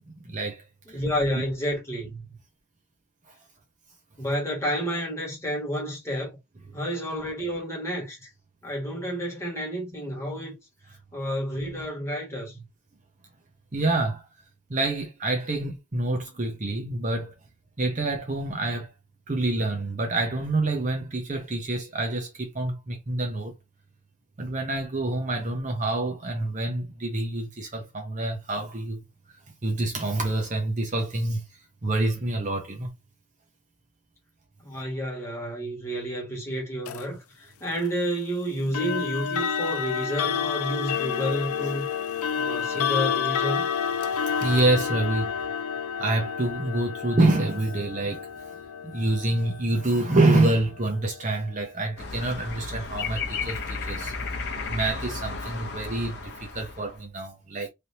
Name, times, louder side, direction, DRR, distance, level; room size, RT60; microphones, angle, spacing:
voice 1, 0.2-1.0 13.7-14.3 14.7-17.3 17.8-18.9 19.3-23.5 24.4-29.0 29.6-31.4 31.8-32.9 44.2-45.4 46.0-48.3 48.9-54.1 54.7-57.7, right 2 dB, 35° right, 0.7 m, -27 dB
voice 2, 0.9-2.3 4.2-6.3 6.7-8.3 8.6-10.5 11.1-12.6 34.6-41.9 42.3-43.7, equal, 15° left, 1.6 m, -30 dB
sound 1, 36.9-37.1 38.7-51.6, left 7 dB, 85° left, 0.4 m, -30 dB
sound 2, 52.0-57.0, left 4 dB, 50° left, 0.7 m, -33 dB
3.3 x 2.8 x 2.7 m
head